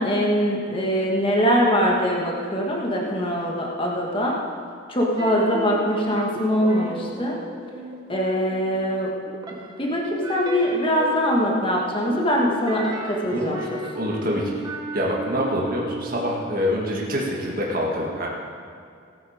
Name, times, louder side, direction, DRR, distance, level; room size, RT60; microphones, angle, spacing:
voice 1, 0.0-4.4 4.9-7.4 8.1-9.1 9.8-13.8, equal, 25° left, -2 dB, 1.7 m, -22 dB
sound 1, 5.2-8.9 9.2-17.0, right 1 dB, 20° right, 1.0 m, -35 dB
voice 2, 13.3-13.6 14.0-18.3, equal, 45° right, -3 dB, 1.8 m, -26 dB
17.5 x 8.7 x 5.1 m, 2.3 s
head